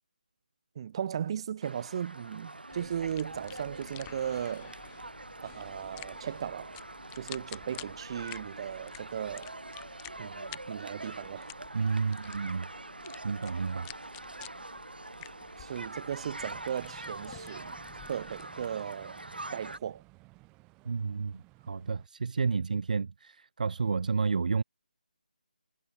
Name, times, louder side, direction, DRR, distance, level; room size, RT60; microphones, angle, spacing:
voice 1, 0.8-4.8 5.4-6.7 7.2-9.5 10.2-12.0 15.6-17.8 18.1-19.2 19.5-20.0, right 9 dB, 35° right, 2.7 m, -37 dB
sound 1, 1.6-19.8, right 2 dB, 90° right, 5.6 m, -44 dB
sound 2, 2.7-18.7, left 36 dB, 15° left, 1.2 m, -52 dB
voice 2, 11.7-12.7 13.2-13.9 20.8-21.4 21.7-24.6, right 5 dB, 55° right, 0.8 m, -30 dB
sound 3, 16.4-22.1, right 25 dB, 15° right, 4.7 m, -56 dB
figure-of-eight pair, 155°, 5 cm